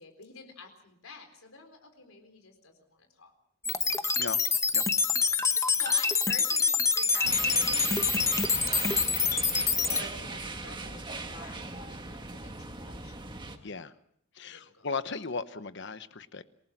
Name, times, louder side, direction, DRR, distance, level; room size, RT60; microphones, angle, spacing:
voice 1, 0.0-3.3 3.7-4.2 5.1-13.8 14.5-14.9, left 4 dB, 80° left, 5 dB, 4.2 m, -49 dB
sound 1, 3.6-10.0, left 5 dB, 15° left, 1.0 m, -26 dB
sound 2, 7.2-13.6, right 3 dB, 20° right, 1.6 m, -38 dB
voice 2, 13.6-13.9 14.3-16.4, left 4 dB, 55° left, 12 dB, 1.0 m, -36 dB
27.5 x 19.0 x 6.0 m, 0.68 s
head